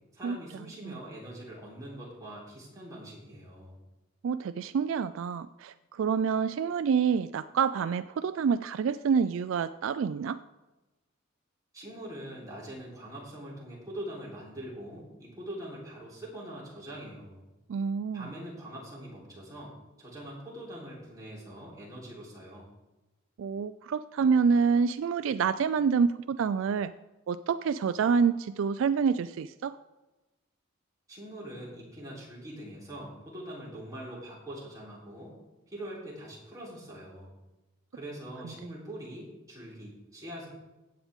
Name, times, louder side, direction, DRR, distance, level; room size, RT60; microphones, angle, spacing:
voice 1, 0.1-3.8 11.7-17.4 18.1-19.7 20.0-22.7 31.1-35.4 35.7-37.3 37.9-40.5, right 1 dB, 15° right, -6 dB, 3.5 m, -43 dB
voice 2, 4.2-10.4 17.7-18.3 23.4-26.9 27.3-29.8, right 6 dB, 65° right, 13 dB, 0.3 m, -27 dB
15.0 x 8.7 x 3.6 m, 1.1 s
head